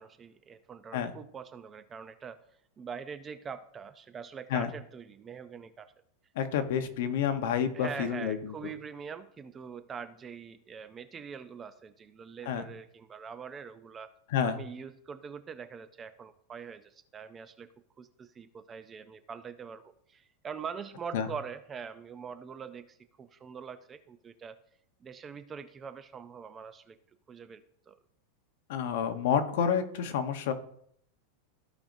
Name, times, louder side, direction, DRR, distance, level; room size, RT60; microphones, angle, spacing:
voice 1, 0.0-2.4 2.8-5.9 7.7-14.1 14.4-17.7 18.0-24.6 25.0-27.0 27.3-28.0, right 6 dB, 15° right, 11 dB, 0.4 m, -43 dB
voice 2, 6.3-8.5 12.5-12.7 14.3-14.6 21.1-21.3 28.7-30.5, left 8 dB, 60° left, 8 dB, 1.0 m, -29 dB
14.5 x 5.1 x 2.6 m, 0.69 s
supercardioid pair, 165°, 0 cm